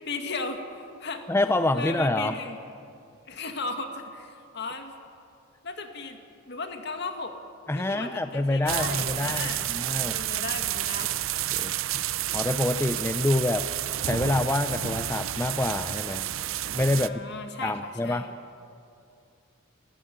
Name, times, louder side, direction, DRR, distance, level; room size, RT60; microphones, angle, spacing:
voice 1, 0.1-0.6 1.0-1.2 1.7-2.6 3.3-4.9 5.6-6.2 6.5-7.4 7.8-11.2 17.0-18.3, left 3 dB, 55° left, 6 dB, 2.1 m, -36 dB
voice 2, 1.3-2.4 7.7-10.2 11.5-12.0 12.3-13.7 14.0-16.3 16.7-17.2 17.6-18.3, left 2 dB, 10° left, 9 dB, 0.5 m, -27 dB
sound 1, 8.7-17.1, right 12 dB, 85° right, 0.6 m, -30 dB
28.0 x 15.0 x 9.4 m, 2.5 s
head